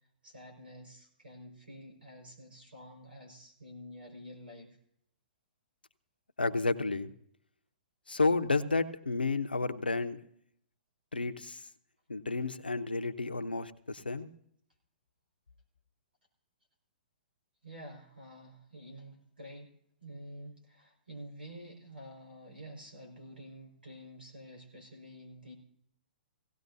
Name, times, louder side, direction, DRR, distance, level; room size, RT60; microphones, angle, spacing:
voice 1, 0.2-4.8 17.6-19.7 20.0-25.5, equal, 85° right, 3 dB, 5.0 m, -49 dB
voice 2, 6.4-7.1 8.1-10.2 11.1-11.6 12.1-14.3, left 3 dB, 90° left, 9 dB, 0.9 m, -31 dB
17.5 x 17.0 x 2.7 m, 0.70 s
figure-of-eight pair, 120°, 5 cm